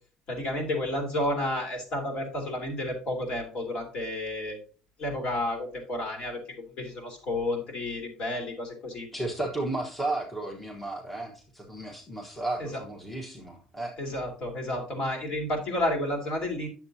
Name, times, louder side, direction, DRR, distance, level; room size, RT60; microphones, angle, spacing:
voice 1, 0.3-4.6 5.0-6.4 6.8-9.1 12.6-12.7 14.0-16.7, left 1 dB, 55° left, 1 dB, 3.2 m, -31 dB
voice 2, 9.1-13.9, right 2 dB, 5° left, 0 dB, 1.2 m, -33 dB
9.5 x 7.1 x 2.8 m, 0.38 s
cardioid pair, 140°, 2 cm